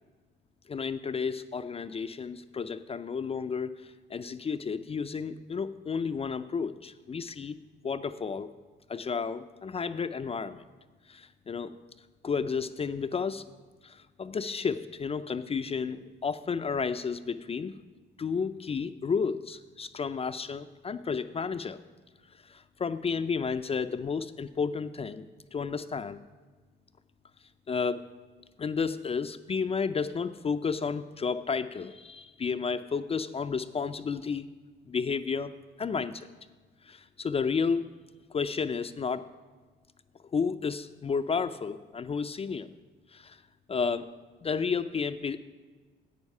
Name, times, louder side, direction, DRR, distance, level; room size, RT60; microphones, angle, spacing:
voice 1, 0.7-3.7 4.1-7.6 7.8-8.5 8.9-10.6 11.1-11.7 12.2-13.4 13.8-17.7 18.2-21.8 22.5-25.3 25.5-26.2 27.7-28.0 28.6-34.5 34.9-35.5 35.8-36.3 36.9-37.8 38.3-39.3 40.3-42.7 43.1-43.4 43.7-44.1 44.4-45.4, left 5 dB, 30° left, 10 dB, 0.4 m, -32 dB
9.4 x 8.1 x 5.4 m, 1.4 s
cardioid pair, 90°, 20 cm